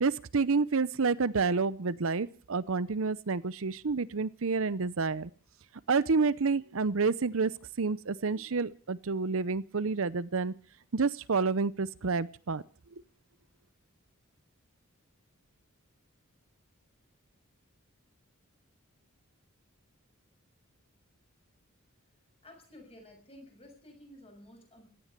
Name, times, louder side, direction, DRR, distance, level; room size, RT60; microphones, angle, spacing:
voice 1, 0.0-5.3 5.9-10.5 10.9-12.6 12.9-13.0, right 4 dB, 65° right, 17 dB, 0.7 m, -29 dB
voice 2, 22.4-24.9, left 1 dB, 30° left, 3 dB, 6.8 m, -53 dB
17.5 x 12.5 x 6.7 m, 0.41 s
head